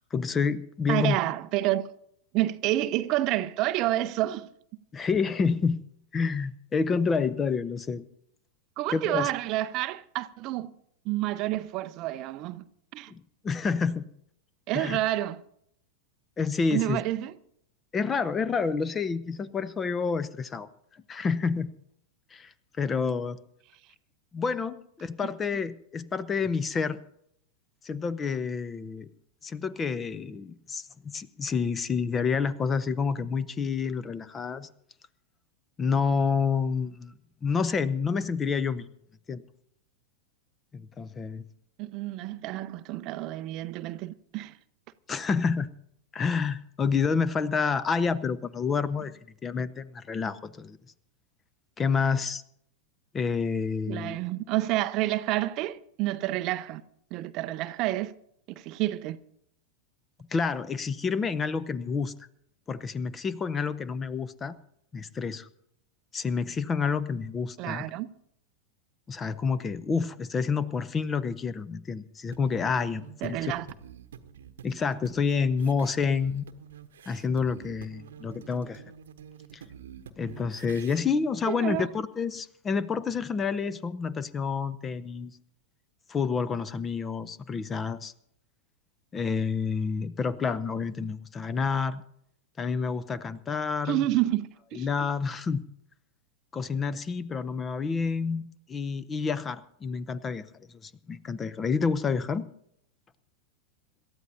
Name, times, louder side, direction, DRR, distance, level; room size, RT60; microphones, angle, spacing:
voice 1, 0.1-1.2 4.9-5.8 6.1-8.0 8.9-9.3 13.1-14.1 14.7-15.0 16.4-17.0 17.9-20.7 21.1-21.7 22.3-23.4 24.3-27.0 27.8-29.1 29.4-34.7 35.8-37.1 37.4-38.9 39.3-39.4 40.7-41.5 45.1-45.7 46.1-50.8 51.8-52.4 53.1-54.2 60.3-62.1 62.7-64.5 64.9-65.5 66.1-67.9 69.1-73.5 74.6-76.5 77.1-78.8 79.5-79.6 80.2-85.4 86.1-88.1 89.1-92.0 92.6-94.1 94.7-95.6 96.5-102.5, left 5 dB, 20° left, 0.7 m, -29 dB
voice 2, 0.9-1.8 2.3-4.5 8.8-10.7 11.1-12.6 12.9-13.1 14.7-15.4 16.7-17.3 41.8-44.5 53.9-56.8 57.1-58.1 58.5-59.2 67.6-68.1 73.2-73.7 81.5-81.9 93.9-94.9, right 15 dB, 40° right, 0.6 m, -29 dB
sound 1, 72.3-81.0, right 8 dB, 60° right, 1.0 m, -48 dB
26.5 x 13.0 x 2.8 m
figure-of-eight pair, 90°, 0 cm